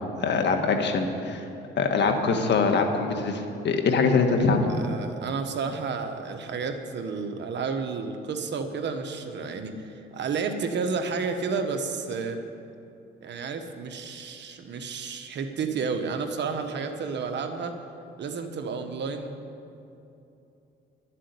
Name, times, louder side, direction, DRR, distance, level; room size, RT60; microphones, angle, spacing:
voice 1, 0.2-1.4 1.8-4.6, left 4 dB, 60° left, 4 dB, 1.6 m, -23 dB
voice 2, 4.7-12.4 13.2-17.8 18.2-19.4, right 5 dB, 60° right, 6 dB, 1.3 m, -31 dB
11.5 x 7.5 x 9.9 m, 2.8 s
cardioid pair, 90°, 20 cm